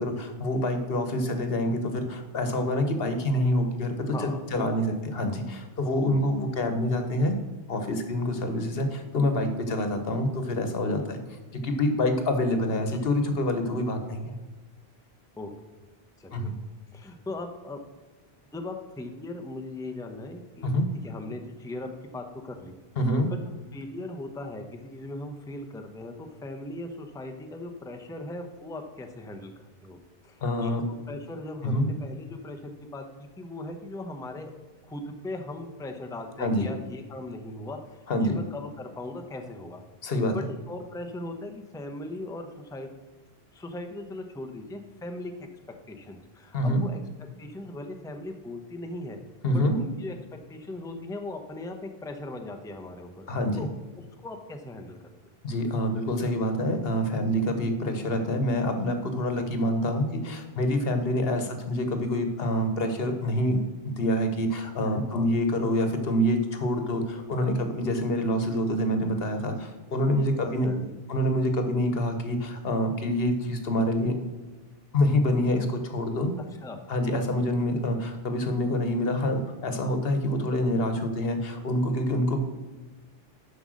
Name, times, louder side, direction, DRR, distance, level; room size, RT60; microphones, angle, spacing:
voice 1, 0.0-3.9 4.5-7.3 7.7-11.2 11.5-14.3 16.3-16.5 20.6-20.9 23.0-23.3 30.4-30.8 31.6-31.9 36.4-36.7 38.1-38.4 40.0-40.3 46.5-46.8 49.4-49.7 53.3-53.7 55.4-63.6 63.8-70.7 71.1-74.1 74.9-76.3 76.9-82.4, left 1 dB, 70° left, 7 dB, 1.2 m, -26 dB
voice 2, 4.1-5.0 6.1-6.2 15.4-15.5 16.2-16.5 16.9-17.8 18.5-20.8 21.0-22.8 23.7-29.5 29.8-30.0 30.2-30.7 31.1-34.5 34.8-42.9 43.5-45.3 45.9-47.0 47.4-49.2 49.6-50.2 50.5-53.3 53.6-53.7 54.0-55.0 61.3-61.5 64.8-65.3 67.4-67.7 70.1-71.0 76.6-76.9, left 2 dB, 5° left, 4 dB, 0.6 m, -39 dB
7.7 x 5.5 x 6.2 m, 1.2 s
omnidirectional pair, 1.0 m